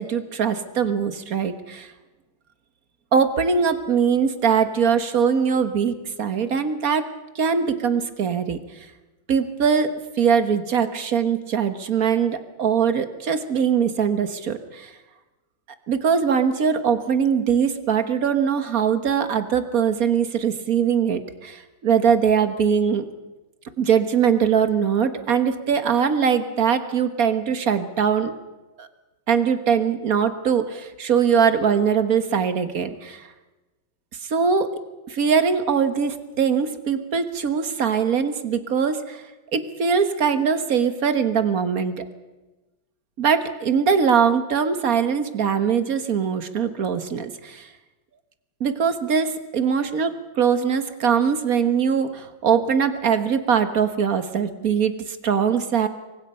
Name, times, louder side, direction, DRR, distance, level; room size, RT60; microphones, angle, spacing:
voice 1, 0.0-1.9 3.1-7.0 7.3-8.6 9.3-14.9 15.9-23.1 23.8-28.3 28.8-28.9 29.3-33.2 34.3-34.7 35.1-39.2 39.5-42.0 43.2-47.7 48.6-55.9, right 6 dB, 45° right, 10 dB, 1.6 m, -21 dB
28.5 x 23.5 x 5.6 m, 1.1 s
omnidirectional pair, 2.4 m